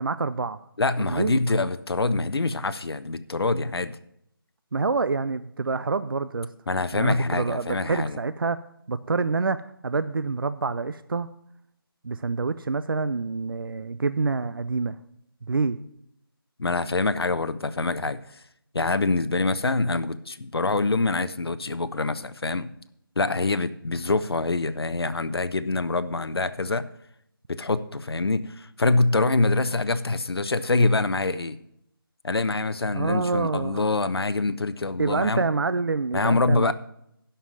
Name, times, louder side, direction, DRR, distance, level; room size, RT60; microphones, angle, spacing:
voice 1, 0.0-0.6 1.1-1.7 4.7-6.5 6.9-8.6 8.9-11.3 12.0-15.0 15.5-15.8 32.9-33.9 35.0-36.7, right 4 dB, 65° right, 13 dB, 0.5 m, -27 dB
voice 2, 0.8-4.0 6.7-8.2 16.6-18.2 18.7-22.7 23.2-26.9 27.5-31.6 32.2-35.4 36.1-36.7, left 3 dB, 85° left, 13 dB, 0.8 m, -25 dB
11.0 x 5.6 x 7.4 m, 0.75 s
figure-of-eight pair, 175°, 13 cm